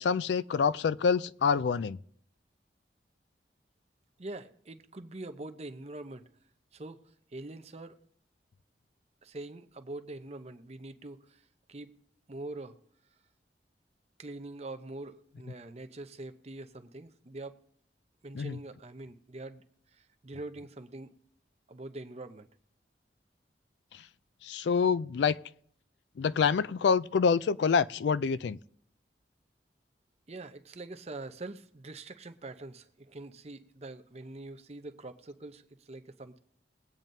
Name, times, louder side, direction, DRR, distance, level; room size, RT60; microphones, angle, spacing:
voice 1, 0.0-2.0 18.3-18.6 24.4-25.4 26.2-28.6, left 6 dB, 75° left, 0.4 m, -26 dB
voice 2, 4.2-6.3 6.7-7.0 7.3-8.0 9.2-11.4 11.7-11.9 12.3-12.8 14.2-17.6 18.2-19.6 19.9-21.1 21.7-22.5 30.3-36.4, right 2 dB, 35° right, 0.7 m, -44 dB
22.0 x 8.8 x 2.7 m
head